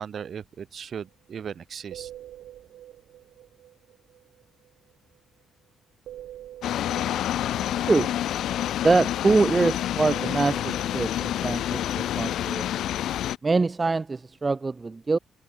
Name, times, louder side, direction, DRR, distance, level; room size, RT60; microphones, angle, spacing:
voice 1, 0.0-2.1, right 7 dB, 55° right, 3.1 m, -37 dB
sound 1, 1.3-1.5 1.8-5.2 6.1-9.7 10.1-12.6, right 12 dB, 80° right, 6.1 m, -46 dB
sound 2, 6.6-13.4, left 12 dB, 75° left, 0.6 m, -28 dB
voice 2, 8.8-12.7 13.4-15.2, right 3 dB, 25° right, 0.7 m, -24 dB
cardioid pair, 90°, 0 cm